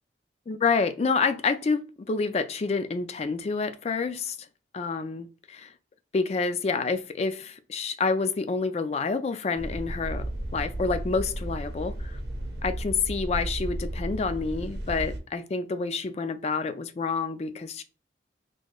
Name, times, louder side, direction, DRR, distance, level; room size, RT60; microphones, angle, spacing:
voice 1, 0.5-4.4 4.7-5.7 6.1-12.2 12.6-17.8, left 4 dB, 35° left, 0.3 m, -28 dB
sound 1, 9.6-15.2, right 1 dB, 70° right, 0.8 m, -33 dB
4.2 x 3.0 x 2.2 m
head